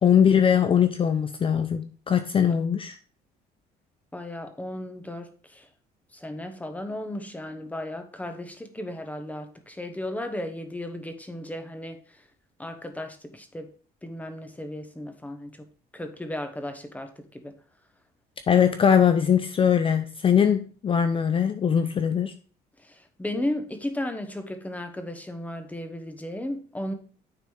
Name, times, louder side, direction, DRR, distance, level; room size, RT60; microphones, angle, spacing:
voice 1, 0.0-3.0 18.5-22.3, left 8 dB, 30° left, 0.5 m, -21 dB
voice 2, 4.1-5.7 6.1-12.2 12.6-13.7 14.0-15.7 15.9-17.6 22.8-26.9, left 1 dB, 10° left, 1.0 m, -35 dB
9.5 x 4.1 x 3.3 m
cardioid pair, 110°, 17 cm